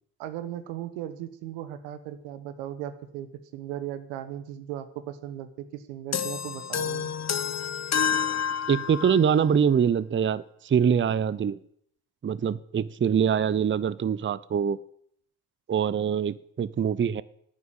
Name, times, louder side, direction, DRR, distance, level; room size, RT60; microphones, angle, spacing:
voice 1, 0.2-7.1, right 11 dB, 90° right, 11 dB, 1.4 m, -37 dB
sound 1, 6.1-9.3, left 7 dB, 35° left, 1.0 m, -29 dB
voice 2, 8.7-11.6 12.2-14.8 15.7-17.2, right 7 dB, 25° right, 18 dB, 0.7 m, -24 dB
11.0 x 9.4 x 9.0 m, 0.69 s
supercardioid pair, 65°, 46 cm